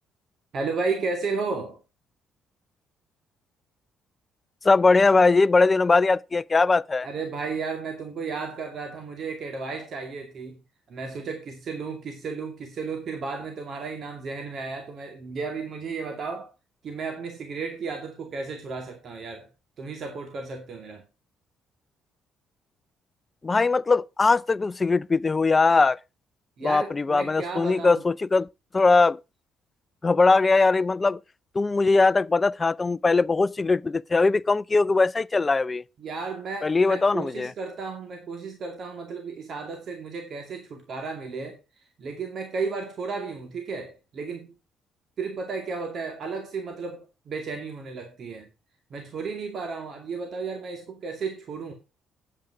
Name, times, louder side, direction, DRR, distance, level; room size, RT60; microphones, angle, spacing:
voice 1, 0.5-1.8 7.0-10.6 10.9-16.5 16.8-19.5 19.8-21.1 26.6-28.0 36.0-44.5 45.2-48.5 48.9-51.7, right 4 dB, 55° right, 2.3 m, -33 dB
voice 2, 4.6-7.1 23.4-26.0 26.6-28.5 28.7-29.2 30.0-31.2 31.5-35.8 36.6-37.5, left 3 dB, 25° left, 0.4 m, -20 dB
8.9 x 8.4 x 4.7 m
supercardioid pair, 80°, 0 cm